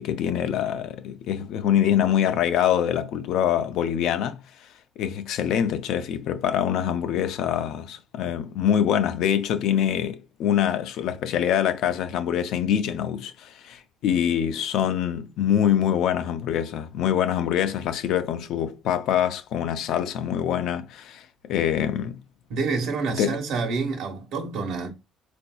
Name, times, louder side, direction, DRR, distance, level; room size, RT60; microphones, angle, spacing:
voice 1, 0.0-4.4 5.0-22.2 23.2-23.4, left 9 dB, 70° left, 0.4 m, -24 dB
voice 2, 22.5-24.9, right 4 dB, 70° right, 1.0 m, -28 dB
3.9 x 2.5 x 2.2 m
cardioid pair, 130°, 0 cm